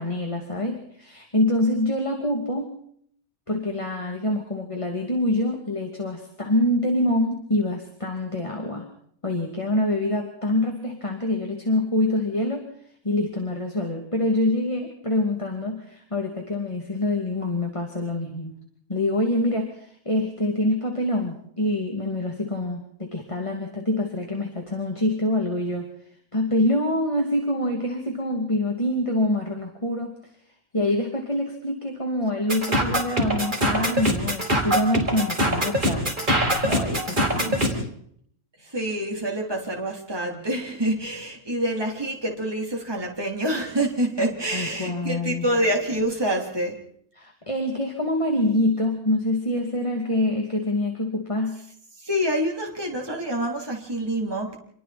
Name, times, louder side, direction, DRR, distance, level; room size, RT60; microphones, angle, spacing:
voice 1, 0.0-2.7 3.5-8.9 9.2-12.7 13.0-18.6 18.9-25.9 26.3-30.2 30.7-36.1 36.4-37.9 44.5-45.5 47.2-51.6, left 1 dB, 20° left, 1 dB, 2.7 m, -25 dB
sound 1, 32.5-37.7, equal, 30° right, 4.7 m, -23 dB
voice 2, 38.6-46.8 52.0-54.6, right 1 dB, 15° right, -1 dB, 3.6 m, -26 dB
28.0 x 22.5 x 4.4 m, 0.65 s
omnidirectional pair, 1.5 m